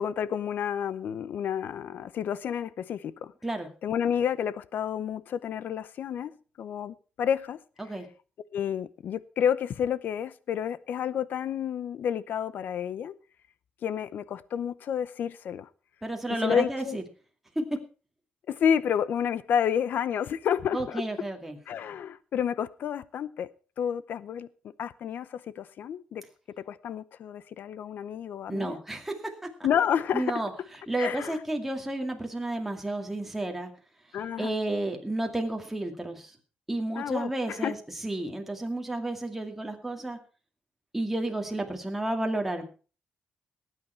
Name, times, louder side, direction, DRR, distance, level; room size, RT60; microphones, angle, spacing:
voice 1, 0.0-3.3 3.8-6.3 6.6-7.6 8.5-13.1 13.8-15.7 16.3-17.0 18.5-21.0 21.7-23.5 23.8-24.5 24.8-26.2 26.6-28.8 29.6-30.4 31.0-31.4 34.1-34.5 37.0-37.7, left 8 dB, 70° left, 0.7 m, -30 dB
voice 2, 16.0-17.0 17.6-17.8 20.7-21.6 28.5-29.5 30.1-30.5 30.9-33.7 34.4-36.3 36.7-37.8 38.0-40.2 40.9-42.6, right 1 dB, 5° right, 2.3 m, -31 dB
18.5 x 9.3 x 4.5 m
wide cardioid pair, 150°, 3 cm